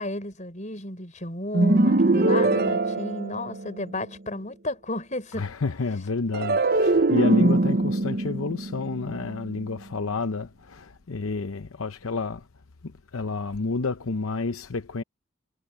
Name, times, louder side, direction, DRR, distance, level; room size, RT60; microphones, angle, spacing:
voice 1, 0.0-5.5, left 1 dB, 35° left, 5.4 m, -33 dB
sound 1, 1.5-3.9 6.3-9.7, right 2 dB, 45° right, 0.7 m, -22 dB
voice 2, 5.3-12.4 13.1-15.0, left 4 dB, 85° left, 0.8 m, -30 dB
head